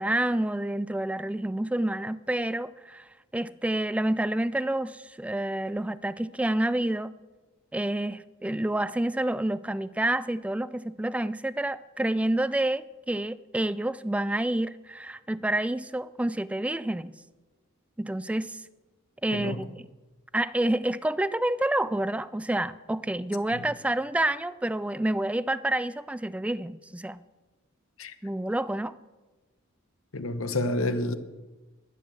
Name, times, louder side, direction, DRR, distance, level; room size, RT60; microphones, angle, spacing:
voice 1, 0.0-3.0 3.3-7.1 7.7-17.1 18.0-18.6 19.2-19.9 20.3-27.2 28.2-28.9, right 1 dB, 5° right, 0.3 m, -28 dB
voice 2, 30.1-31.2, left 1 dB, 65° left, 1.0 m, -28 dB
11.0 x 11.0 x 6.8 m
head